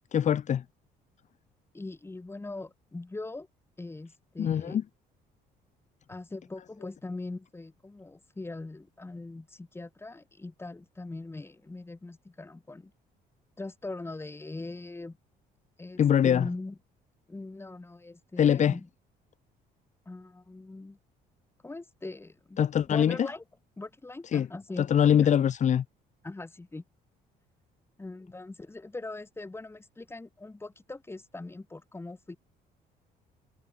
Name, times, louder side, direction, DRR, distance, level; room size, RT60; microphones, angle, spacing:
voice 1, 0.1-0.6 4.4-4.8 16.0-16.5 18.4-18.8 22.6-23.3 24.3-24.5 24.8-25.8, left 9 dB, 45° left, 1.4 m, -23 dB
voice 2, 1.7-3.5 3.8-4.8 6.1-12.9 13.6-15.2 15.8-16.8 17.3-18.9 20.1-21.0 21.6-22.6 22.9-23.4 23.8-24.9 25.2-25.3 26.2-26.8 28.0-32.4, left 2 dB, 15° left, 5.4 m, -41 dB
cardioid pair, 110°, 17 cm